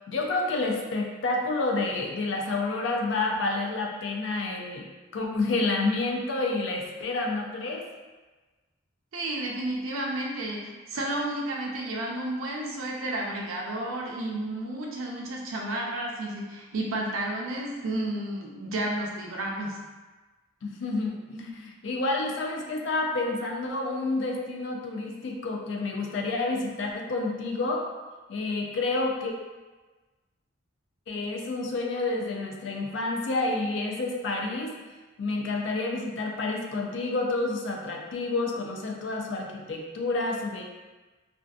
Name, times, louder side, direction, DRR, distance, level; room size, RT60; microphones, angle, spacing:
voice 1, 0.1-4.9 5.1-7.8 20.6-27.9 28.3-29.3 31.1-34.7 35.2-40.6, left 2 dB, 60° left, 1 dB, 0.4 m, -29 dB
voice 2, 9.1-19.8, right 1 dB, 85° right, -1 dB, 0.5 m, -32 dB
2.5 x 2.4 x 2.3 m, 1.2 s
head